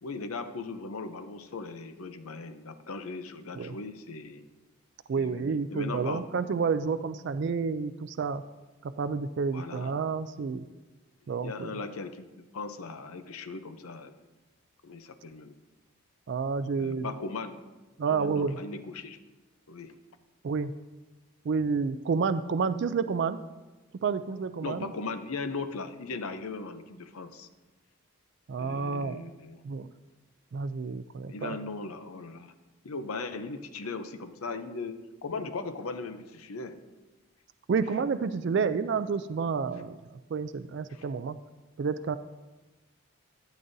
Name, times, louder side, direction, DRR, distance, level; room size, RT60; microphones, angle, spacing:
voice 1, 0.0-4.5 5.1-5.4 5.7-6.5 9.5-9.9 11.3-12.3 12.5-14.1 14.8-15.5 16.8-17.6 18.1-19.2 19.7-20.0 24.6-27.5 28.6-29.6 31.3-32.5 32.8-36.8 38.5-38.6 40.9-41.0, left 3 dB, 85° left, 10 dB, 0.7 m, -38 dB
voice 2, 5.1-8.4 8.8-10.6 11.3-11.7 16.3-17.1 18.0-18.6 20.4-20.7 21.4-23.4 24.0-24.9 28.5-29.2 29.6-29.9 30.5-31.6 37.7-40.0 40.3-41.4 41.8-42.2, right 5 dB, 55° right, 12 dB, 0.3 m, -29 dB
12.0 x 10.5 x 2.7 m, 1.2 s
head